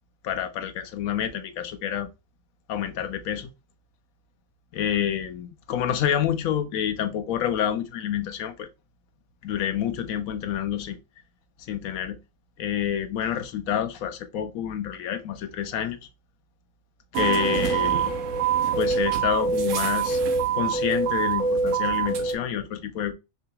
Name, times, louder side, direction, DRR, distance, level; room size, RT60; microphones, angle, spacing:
voice 1, 0.2-2.1 2.7-3.5 4.7-8.7 9.4-11.0 11.7-12.2 12.6-16.0 17.1-18.2 18.8-20.2 20.5-23.1, left 9 dB, 85° left, 1.1 m, -28 dB
sound 1, 17.1-22.3, right 6 dB, 70° right, 1.0 m, -24 dB
4.8 x 2.3 x 2.8 m
omnidirectional pair, 1.4 m